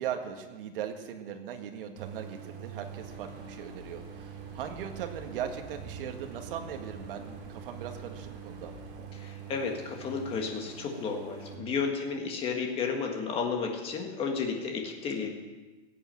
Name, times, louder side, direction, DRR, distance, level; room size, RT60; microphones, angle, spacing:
voice 1, 0.0-9.1 11.5-11.8, right 9 dB, 60° right, 5 dB, 1.9 m, -39 dB
Idling, 2.0-11.5, right 7 dB, 40° right, 2.3 m, -45 dB
sound 1, 2.9-8.9, right 1 dB, 10° right, 5.9 m, -50 dB
voice 2, 9.1-15.3, left 5 dB, 15° left, 2 dB, 1.6 m, -32 dB
16.5 x 8.6 x 7.6 m, 1.2 s
supercardioid pair, 175°, 32 cm